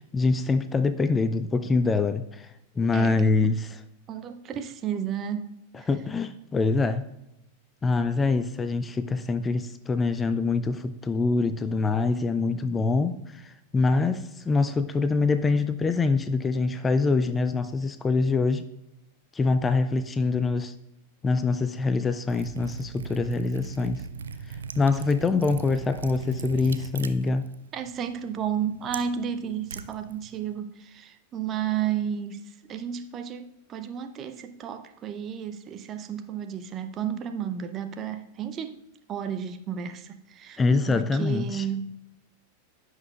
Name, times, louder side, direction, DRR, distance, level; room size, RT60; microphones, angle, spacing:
voice 1, 0.0-2.5 2.8-3.7 5.9-7.1 7.8-18.7 19.3-20.7 21.2-24.0 24.5-27.5 40.6-41.7, left 3 dB, 15° left, 0.5 m, -25 dB
voice 2, 2.9-3.3 4.1-5.6 27.7-38.8 39.1-40.6 40.9-42.0, right 8 dB, 30° right, 0.7 m, -32 dB
Liquid, 22.2-30.5, right 5 dB, 70° right, 0.5 m, -39 dB
15.5 x 6.4 x 2.4 m
figure-of-eight pair, 90°, 0 cm